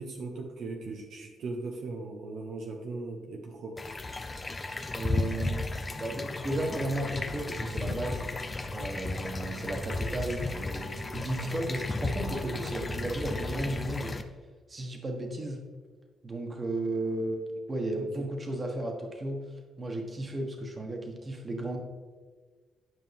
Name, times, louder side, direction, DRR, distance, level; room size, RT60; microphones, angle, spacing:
voice 1, 0.0-3.8 12.3-12.6 18.0-18.3, right 3 dB, 70° right, 2 dB, 0.8 m, -39 dB
sound 1, 3.8-14.2, left 2 dB, 25° left, 0.6 m, -34 dB
voice 2, 4.9-5.6 6.0-8.3 8.7-14.1 14.7-15.6 16.2-17.4 17.7-19.4 19.8-21.8, right 1 dB, 30° right, 2 dB, 1.5 m, -34 dB
9.5 x 5.3 x 3.5 m, 1.4 s
cardioid pair, 90°, 0 cm